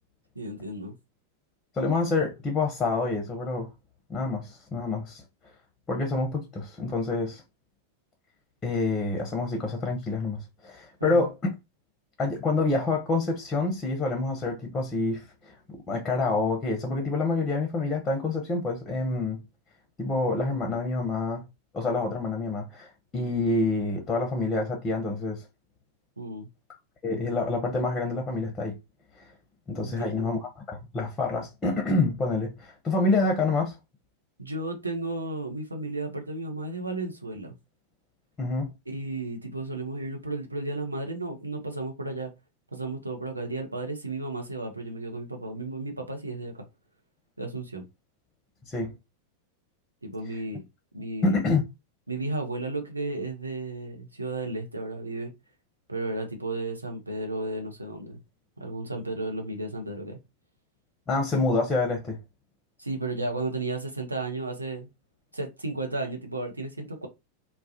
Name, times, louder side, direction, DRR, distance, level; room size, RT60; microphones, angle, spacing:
voice 1, 0.4-1.0 11.0-11.3 26.2-26.5 29.8-30.3 34.4-37.5 38.9-42.3 42.7-46.6 47.4-47.8 50.0-50.6 50.9-51.4 52.1-55.3 55.9-58.2 58.6-60.2 62.8-64.9 65.3-67.1, right 2 dB, 80° right, 0.6 m, -33 dB
voice 2, 1.7-3.7 4.1-5.2 5.9-7.4 8.6-11.5 12.2-19.4 20.0-21.4 21.7-25.4 27.0-28.8 29.7-33.7 38.4-38.7 48.7-48.9 51.2-51.6 61.1-62.2, left 3 dB, 20° left, 0.6 m, -27 dB
2.3 x 2.0 x 2.6 m
figure-of-eight pair, 90°, 0 cm